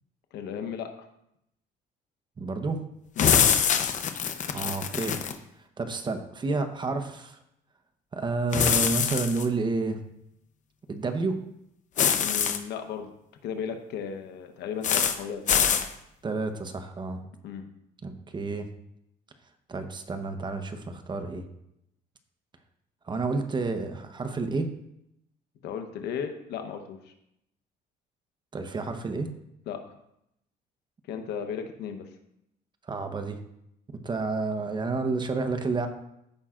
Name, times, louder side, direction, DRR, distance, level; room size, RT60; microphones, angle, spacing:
voice 1, 0.3-0.9 3.2-3.4 12.2-13.1 13.4-15.7 17.4-17.6 25.6-27.1 29.7-29.8 31.1-32.1, left 7 dB, 80° left, 6 dB, 1.0 m, -35 dB
voice 2, 2.4-2.8 4.5-5.1 5.8-7.4 8.1-10.0 10.9-11.4 16.2-17.2 18.0-18.7 19.7-21.5 23.1-24.7 28.5-29.3 32.9-33.4 34.0-35.9, right 3 dB, 25° right, 7 dB, 0.9 m, -30 dB
sound 1, 3.2-5.3 8.5-9.4 12.0-12.6 14.8-15.2 15.5-15.9, left 8 dB, 45° left, 0.8 m, -24 dB
15.0 x 5.6 x 2.5 m, 0.80 s
cardioid pair, 110°, 17 cm